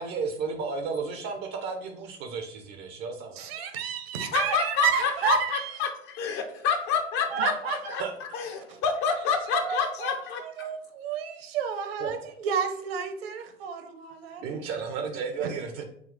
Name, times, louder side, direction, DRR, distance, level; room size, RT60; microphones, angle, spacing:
voice 1, 0.0-3.5 8.0-8.1 12.0-12.1 14.4-15.8, right 5 dB, 30° right, 4 dB, 0.5 m, -33 dB
voice 2, 3.4-5.8 7.3-7.9 8.7-8.8 9.5-10.1 10.4-14.7, right 7 dB, 55° right, 8 dB, 0.8 m, -31 dB
voice 3, 4.3-8.0 8.3-10.7, left 6 dB, 30° left, 6 dB, 0.5 m, -28 dB
5.9 x 2.2 x 3.7 m, 0.68 s
figure-of-eight pair, 90°, 37 cm